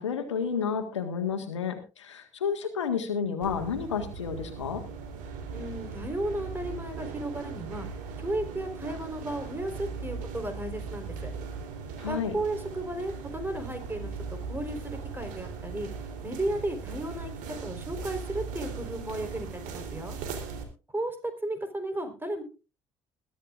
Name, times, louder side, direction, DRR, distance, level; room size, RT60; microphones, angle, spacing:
voice 1, 0.0-4.8 12.0-12.4, left 6 dB, 85° left, 7 dB, 1.7 m, -31 dB
sound 1, 3.4-20.6, right 5 dB, 65° right, 3.5 m, -39 dB
voice 2, 5.5-7.9 8.2-11.3 12.1-14.1 14.4-15.9 16.2-17.3 17.6-20.2 20.9-22.4, right 1 dB, 15° right, 7 dB, 4.2 m, -34 dB
21.5 x 12.0 x 2.5 m, 0.32 s
figure-of-eight pair, 55°, 15 cm